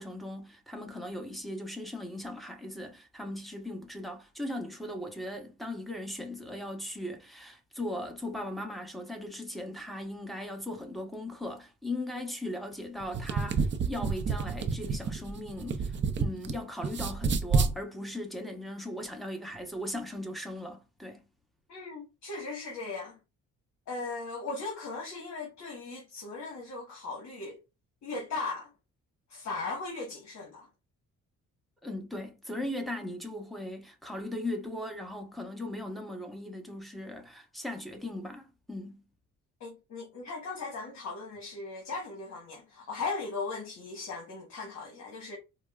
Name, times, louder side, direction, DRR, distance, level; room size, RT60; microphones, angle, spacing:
voice 1, 0.0-21.3 31.8-39.0, left 1 dB, ahead, 1.0 m, -38 dB
sound 1, 13.0-16.5 16.8-17.7, right 5 dB, 40° right, 0.5 m, -29 dB
voice 2, 21.7-23.2 23.9-27.6 28.0-28.7 29.3-30.7 39.6-45.4, left 3 dB, 65° left, 1.3 m, -38 dB
4.7 x 2.1 x 2.4 m
cardioid pair, 90°, 30 cm